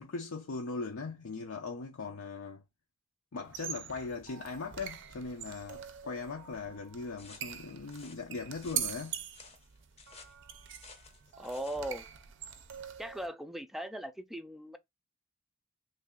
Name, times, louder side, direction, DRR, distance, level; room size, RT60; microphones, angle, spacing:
voice 1, 0.0-2.6 3.3-9.2, left 4 dB, 75° left, 0.6 m, -39 dB
sound 1, 3.4-13.3, right 9 dB, 60° right, 0.5 m, -43 dB
sound 2, 7.2-11.9, left 4 dB, 30° left, 0.6 m, -55 dB
voice 2, 11.4-12.1 13.0-14.8, right 1 dB, ahead, 0.3 m, -39 dB
3.3 x 2.4 x 3.7 m
head